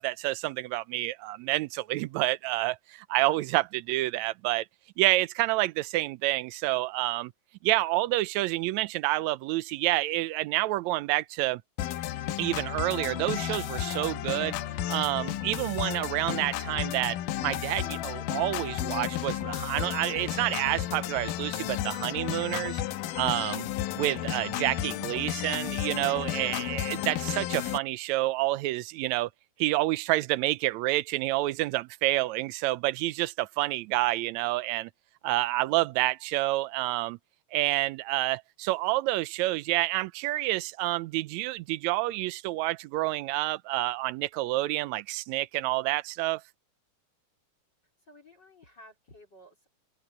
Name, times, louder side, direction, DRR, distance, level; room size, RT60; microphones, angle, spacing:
voice 1, 0.0-4.7 5.0-7.3 7.6-11.6 12.4-14.6 14.9-22.8 23.2-23.7 24.0-29.3 29.6-34.9 35.2-37.2 37.5-46.4, right 18 dB, 75° right, 1.7 m, -28 dB
sound 1, 11.8-27.8, left 12 dB, 85° left, 2.5 m, -33 dB
voice 2, 48.0-49.7, left 1 dB, 30° left, 4.7 m, -54 dB
omnidirectional pair, 3.7 m